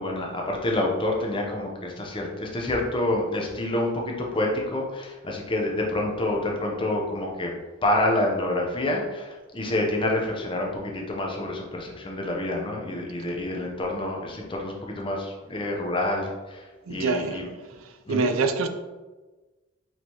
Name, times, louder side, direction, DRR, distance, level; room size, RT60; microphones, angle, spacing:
voice 1, 0.0-7.5 7.8-17.5 18.1-18.3, left 1 dB, 25° left, 0 dB, 0.6 m, -28 dB
voice 2, 16.9-17.4 18.1-18.7, right 4 dB, 85° right, 7 dB, 0.4 m, -25 dB
4.3 x 3.3 x 2.9 m, 1.2 s
head